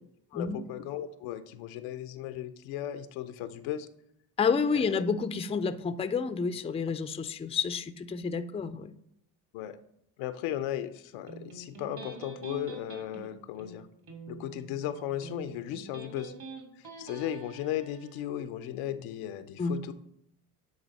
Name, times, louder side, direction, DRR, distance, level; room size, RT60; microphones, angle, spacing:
voice 1, 0.3-3.9 4.7-5.0 9.5-9.8 10.2-13.9 14.3-16.3 16.8-19.9, left 11 dB, 85° left, 11 dB, 0.6 m, -36 dB
voice 2, 4.4-9.0 19.6-19.8, left 5 dB, 15° left, 12 dB, 0.4 m, -29 dB
Electric guitar, 11.3-18.2, right 3 dB, 50° right, 1.9 m, -46 dB
9.6 x 3.9 x 4.0 m, 0.75 s
supercardioid pair, 60°, 48 cm